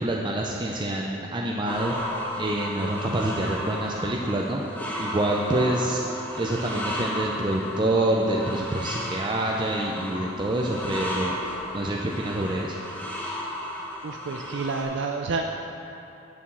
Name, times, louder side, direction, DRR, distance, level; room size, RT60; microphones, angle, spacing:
voice 1, 0.0-1.9 2.4-4.6 5.0-12.8, right 1 dB, 25° right, -2 dB, 0.5 m, -27 dB
sound 1, 1.7-14.8, left 1 dB, 10° left, 0.9 m, -34 dB
voice 2, 14.0-15.4, right 4 dB, 80° right, 2 dB, 0.4 m, -29 dB
7.1 x 6.8 x 6.1 m, 2.9 s
head